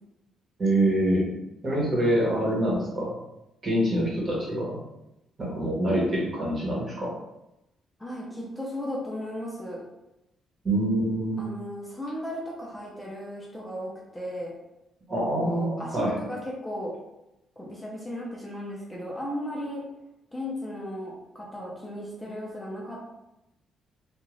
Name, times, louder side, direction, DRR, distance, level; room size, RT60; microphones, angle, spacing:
voice 1, 0.6-1.3 1.6-3.2 3.6-4.8 5.4-7.1 10.6-11.4 15.1-16.1, right 1 dB, 40° right, -4 dB, 1.2 m, -25 dB
voice 2, 8.0-9.8 11.4-14.5 15.4-16.9 17.6-19.9 20.3-23.0, left 1 dB, 10° left, -4 dB, 0.7 m, -35 dB
2.5 x 2.4 x 3.2 m, 0.90 s
cardioid pair, 90°, 0 cm